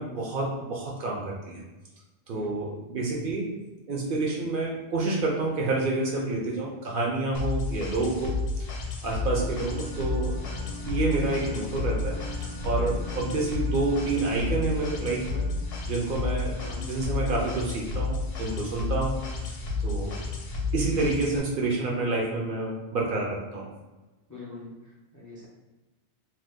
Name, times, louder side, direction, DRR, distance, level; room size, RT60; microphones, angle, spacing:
voice 1, 0.0-1.6 2.3-3.5 3.9-8.7 9.0-10.4 10.9-12.2 12.6-15.5 15.9-19.2 19.5-19.6 19.8-20.2 20.7-23.6, right 2 dB, 60° right, -2 dB, 0.7 m, -28 dB
voice 2, 2.3-2.6 12.7-13.1 16.6-16.8 20.8-21.1 24.3-25.5, left 2 dB, 25° left, -6 dB, 0.5 m, -43 dB
sound 1, 7.3-21.4, left 3 dB, 65° left, 0.8 m, -31 dB
sound 2, 9.2-18.6, left 2 dB, 80° right, 1.0 m, -44 dB
2.7 x 2.2 x 3.4 m, 1.1 s
omnidirectional pair, 1.1 m